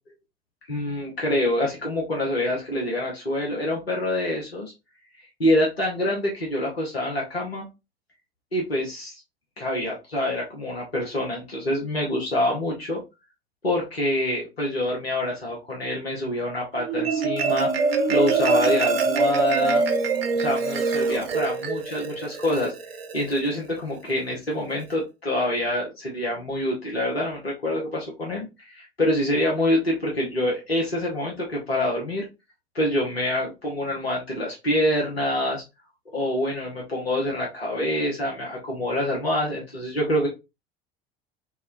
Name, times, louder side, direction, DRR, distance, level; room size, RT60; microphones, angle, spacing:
voice 1, 0.7-4.7 5.4-7.7 8.5-9.2 9.6-13.0 13.6-19.8 20.3-22.7 23.1-32.2 32.7-35.6 36.1-40.3, left 1 dB, 85° left, -2 dB, 0.9 m, -26 dB
Marimba xylophone, 16.8-23.4, right 4 dB, 75° right, 0.6 m, -24 dB
4.0 x 2.2 x 2.5 m, 0.25 s
figure-of-eight pair, 70°, 30 cm